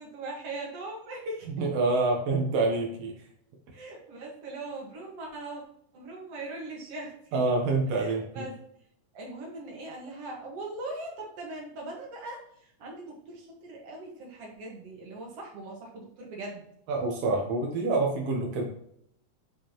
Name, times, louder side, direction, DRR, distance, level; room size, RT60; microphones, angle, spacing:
voice 1, 0.0-1.5 3.7-5.6 5.9-7.4 7.9-8.5 9.1-12.4 12.8-16.6, right 2 dB, 50° right, -2 dB, 2.4 m, -40 dB
voice 2, 1.6-3.1 7.3-8.4 16.9-18.7, right 3 dB, 70° right, 0 dB, 1.5 m, -27 dB
8.9 x 5.0 x 3.0 m, 0.71 s
omnidirectional pair, 4.0 m